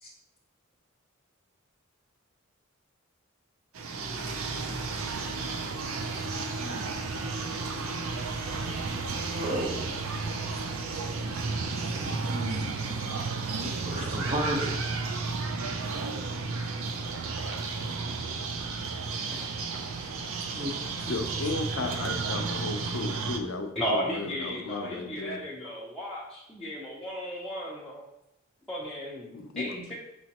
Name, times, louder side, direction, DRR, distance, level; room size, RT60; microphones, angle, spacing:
sound 1, 3.7-23.4, right 4 dB, 85° right, 0.5 m, -32 dB
voice 1, 9.3-9.9 11.5-14.7 20.5-21.1, right 1 dB, 30° right, -1 dB, 0.8 m, -35 dB
voice 2, 21.1-25.4 29.3-29.9, left 3 dB, 70° left, 6 dB, 0.5 m, -35 dB
voice 3, 23.7-28.0 28.7-29.9, equal, ahead, -8 dB, 0.7 m, -34 dB
5.6 x 3.0 x 2.9 m, 0.83 s
head